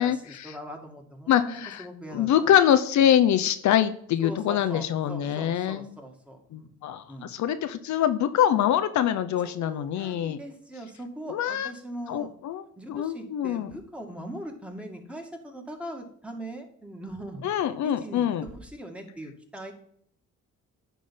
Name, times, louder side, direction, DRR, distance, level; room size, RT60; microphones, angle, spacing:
voice 1, 0.0-2.3 4.2-6.7 7.1-7.3 9.4-12.3 12.8-17.4 17.8-19.7, right 1 dB, 5° right, 2 dB, 2.0 m, -41 dB
voice 2, 1.3-1.8 2.1-5.9 6.5-10.4 11.3-11.7 12.1-12.6 12.9-13.7 17.4-18.4, left 10 dB, 70° left, 11 dB, 0.7 m, -24 dB
10.0 x 3.9 x 5.5 m, 0.66 s
cardioid pair, 90°, 30 cm